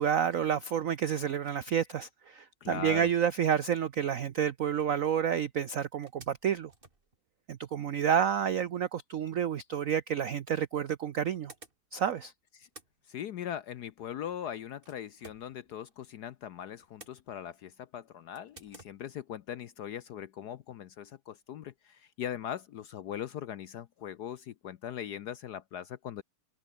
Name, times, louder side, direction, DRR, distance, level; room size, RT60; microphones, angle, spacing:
voice 1, 0.0-6.7 7.5-11.5 11.9-12.3, right 8 dB, 75° right, 0.7 m, -29 dB
voice 2, 2.6-3.1 12.6-12.7 13.1-26.2, left 10 dB, 65° left, 1.0 m, -40 dB
sound 1, 6.0-7.9 9.9-10.0 10.9-12.2 12.5-16.2 16.6-17.7 18.3-19.0, right 2 dB, 25° right, 3.1 m, -56 dB
omnidirectional pair, 2.3 m